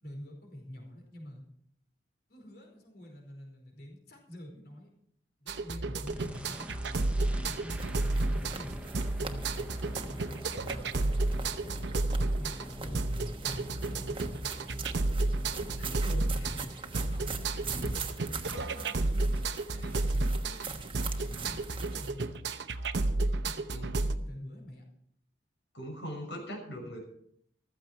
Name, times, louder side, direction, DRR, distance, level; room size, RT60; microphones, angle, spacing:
voice 1, 0.0-1.4 2.3-4.9 5.4-6.9 7.3-10.4 10.8-11.9 12.3-14.9 15.7-16.2 16.5-18.3 18.6-19.3 19.7-22.4 23.4-24.8, left 1 dB, 60° left, 1 dB, 4.9 m, -47 dB
sound 1, 5.5-24.2, right 2 dB, 75° right, 0.9 m, -32 dB
sound 2, 6.1-19.4, equal, 5° right, 1.0 m, -46 dB
sound 3, 7.7-22.1, right 3 dB, 30° right, 1.2 m, -42 dB
voice 2, 13.8-14.2 15.8-16.6 23.7-24.1 25.7-27.0, equal, 80° left, 1 dB, 6.4 m, -41 dB
14.5 x 14.0 x 4.5 m, 0.68 s
head